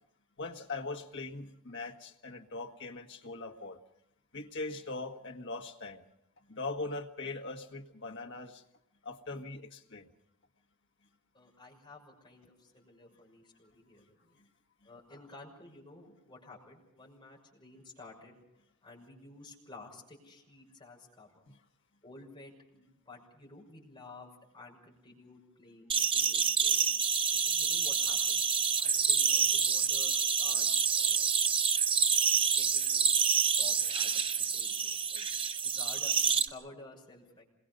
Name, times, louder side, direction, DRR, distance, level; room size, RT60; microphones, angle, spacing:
voice 1, 0.4-3.8 4.3-6.0 6.5-8.6 9.0-10.1 14.4-14.5 21.5-21.6 32.4-32.5, left 3 dB, 55° left, 3 dB, 1.7 m, -41 dB
voice 2, 11.3-14.4 14.8-18.4 18.8-21.4 22.0-26.9 27.3-28.4 28.8-31.3 32.4-33.1 33.4-35.3 35.8-37.4, left 2 dB, 20° left, -2 dB, 6.2 m, -53 dB
sound 1, 25.9-36.5, right 6 dB, 25° right, 0.8 m, -28 dB
27.5 x 21.5 x 5.5 m, 0.78 s
head